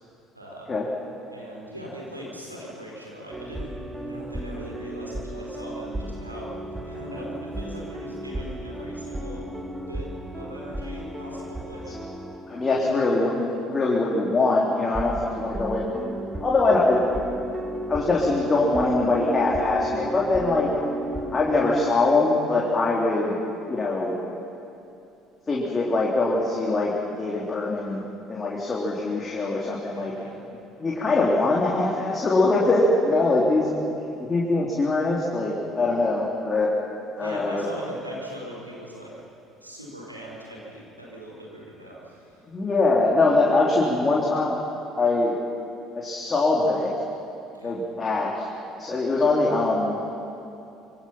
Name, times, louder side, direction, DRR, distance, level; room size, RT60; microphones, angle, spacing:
voice 1, 0.3-0.7 1.3-3.7 4.1-9.5 9.9-12.0 12.7-13.1 29.9-30.3 37.2-39.2 39.6-42.5 47.5-47.8, equal, 90° right, -4 dB, 4.8 m, -40 dB
sound 1, 3.3-13.5 13.7-13.9 14.7-21.9, right 1 dB, 10° right, 2.2 m, -34 dB
voice 2, 12.5-15.9 16.4-17.1 17.9-20.7 21.3-23.4 23.7-24.2 25.5-30.1 30.8-33.7 34.2-36.7 37.2-37.6 42.5-44.6 45.0-45.4 46.0-46.9 47.6-48.5 48.8-50.0, left 2 dB, 25° left, -4 dB, 3.5 m, -23 dB
25.5 x 24.0 x 5.8 m, 2.8 s
figure-of-eight pair, 55°, 0 cm